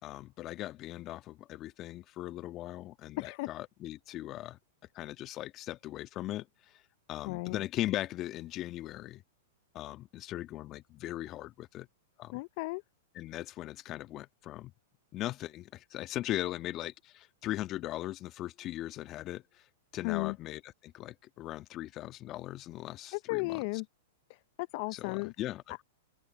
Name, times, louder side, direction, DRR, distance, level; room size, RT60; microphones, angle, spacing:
voice 1, 0.0-4.6 4.9-6.5 7.1-9.2 9.7-11.9 12.2-12.4 13.1-14.7 15.1-19.6 19.9-23.6 24.9-25.8, left 15 dB, 35° left, 1.6 m, -39 dB
voice 2, 3.2-3.5 7.2-7.6 12.3-12.8 20.0-20.4 23.1-23.9 24.3-25.3, left 27 dB, 50° left, 0.5 m, -35 dB
open air
hypercardioid pair, 110°, 0 cm